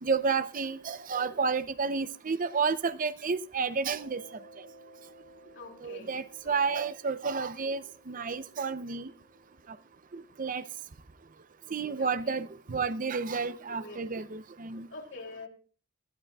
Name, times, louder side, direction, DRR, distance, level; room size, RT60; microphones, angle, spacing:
voice 1, 0.0-4.2 5.8-9.1 10.1-10.6 11.7-14.9, right 5 dB, 40° right, 0.6 m, -31 dB
Mallet percussion, 3.9-10.3, right 1 dB, 70° right, 2.3 m, -56 dB
voice 2, 5.5-6.7 12.0-12.4 13.7-14.3 14.9-15.5, left 3 dB, 60° left, 2.8 m, -46 dB
19.0 x 14.0 x 2.3 m
head